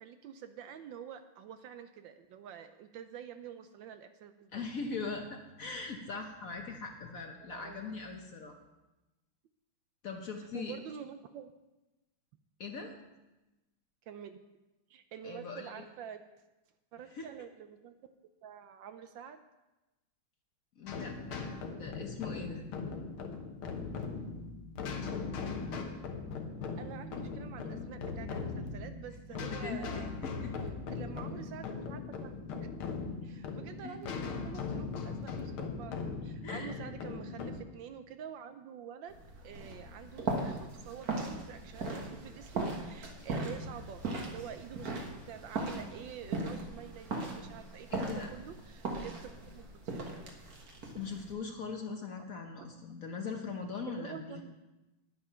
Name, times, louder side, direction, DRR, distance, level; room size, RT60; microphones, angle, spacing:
voice 1, 0.0-4.6 7.4-7.9 10.5-11.5 14.1-14.6 14.9-16.2 16.9-17.9 18.4-19.4 21.3-21.6 26.8-30.1 30.9-32.6 33.2-50.1 53.9-54.5, right 8 dB, 75° right, 9 dB, 1.2 m, -47 dB
voice 2, 4.5-8.5 10.0-10.8 12.6-12.9 15.2-15.8 17.1-17.3 20.8-22.7 29.3-30.7 33.8-33.9 36.4-36.9 47.9-48.3 51.0-54.4, left 4 dB, 50° left, 3 dB, 1.1 m, -41 dB
sound 1, 20.9-37.6, left 4 dB, 80° left, 1.9 m, -39 dB
sound 2, 39.1-51.3, right 2 dB, 50° right, 1.8 m, -39 dB
10.5 x 8.7 x 5.6 m, 1.0 s
omnidirectional pair, 2.3 m